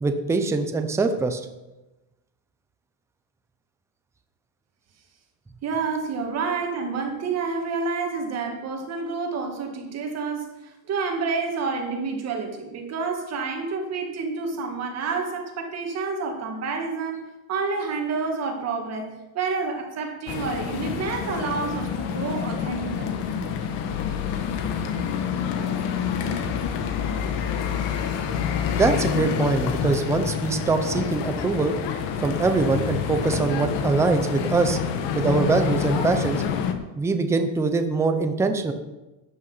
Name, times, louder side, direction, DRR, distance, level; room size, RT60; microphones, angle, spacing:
voice 1, 0.0-1.4 28.8-31.7 32.2-34.8 35.1-36.4 37.0-38.7, right 3 dB, 5° right, 7 dB, 0.5 m, -23 dB
voice 2, 5.6-23.2, right 4 dB, 30° right, 3 dB, 1.9 m, -29 dB
sound 1, 20.3-36.7, left 7 dB, 55° left, 1.7 m, -27 dB
14.0 x 9.6 x 5.6 m, 1.0 s
cardioid pair, 175°, 50 cm